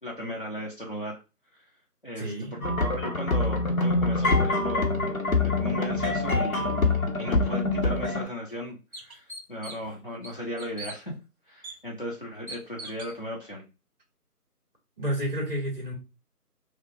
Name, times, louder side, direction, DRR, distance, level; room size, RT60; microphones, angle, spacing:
voice 1, 0.0-1.2 2.0-11.2 11.5-13.7, left 1 dB, 35° left, 0.8 m, -37 dB
voice 2, 2.2-2.8 15.0-15.9, right 1 dB, 35° right, 1.6 m, -31 dB
sound 1, 2.6-8.3, left 2 dB, 60° left, 0.9 m, -25 dB
sound 2, 7.9-8.0 8.5-8.6 8.9-9.9 10.2-11.0 11.6-11.8 12.5-13.1, right 2 dB, 65° right, 0.9 m, -41 dB
2.9 x 2.2 x 2.6 m
figure-of-eight pair, 160°, 47 cm